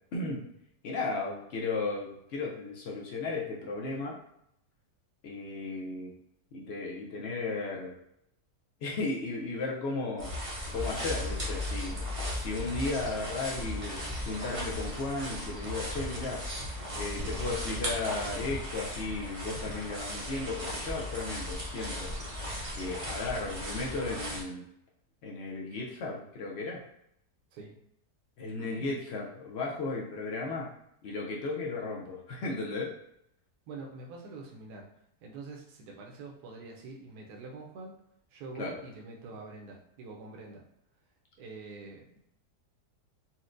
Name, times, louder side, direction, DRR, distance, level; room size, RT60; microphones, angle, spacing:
voice 1, 0.1-0.4 0.8-4.2 5.2-6.1 6.5-7.9 8.8-12.0 12.3-16.4 16.9-22.1 22.7-24.6 25.2-26.8 28.4-30.7 31.0-32.9 38.6-38.7, left 3 dB, 75° left, -2 dB, 0.6 m, -35 dB
sound 1, 10.2-24.4, equal, 45° right, 0.4 m, -36 dB
voice 2, 28.6-28.9 33.7-34.9 35.2-38.0 38.3-40.6 41.4-42.2, right 3 dB, 80° right, -1 dB, 1.2 m, -45 dB
4.2 x 2.1 x 2.5 m, 0.75 s
omnidirectional pair, 1.7 m